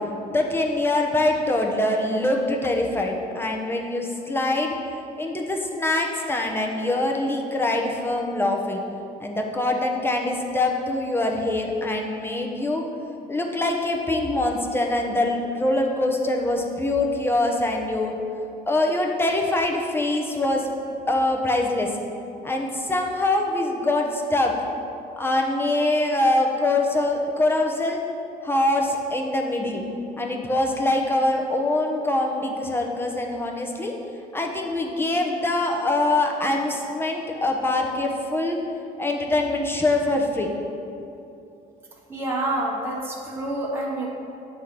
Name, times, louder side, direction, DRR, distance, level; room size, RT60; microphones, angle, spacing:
voice 1, 0.3-4.7 5.2-8.8 9.2-12.8 13.3-18.1 18.7-20.7 21.1-21.9 22.4-24.5 25.2-28.0 28.4-29.8 30.2-33.9 34.3-38.6 39.0-40.5, left 2 dB, 15° left, 1 dB, 0.8 m, -24 dB
voice 2, 42.1-44.1, right 1 dB, 15° right, -4 dB, 1.0 m, -27 dB
8.1 x 3.4 x 5.9 m, 2.8 s
cardioid pair, 110°, 17 cm